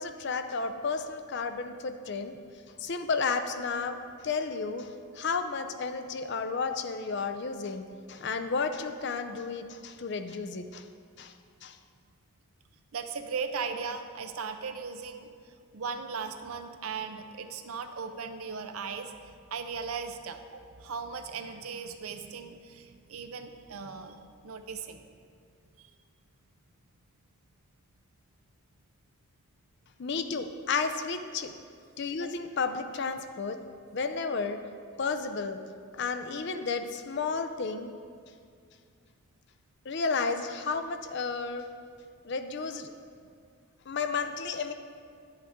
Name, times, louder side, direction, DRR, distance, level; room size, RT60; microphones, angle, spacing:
voice 1, 0.0-2.3 2.8-10.9 11.2-11.3 11.6-11.8 30.0-31.5 32.0-33.6 33.9-34.6 35.0-35.6 35.9-37.9 39.9-41.6 42.2-42.9 43.9-44.7, left 4 dB, 50° left, 9 dB, 0.5 m, -32 dB
voice 2, 12.9-15.3 15.7-25.0 25.8-25.9, right 5 dB, 75° right, 8 dB, 0.6 m, -38 dB
9.9 x 8.7 x 3.6 m, 2.2 s
head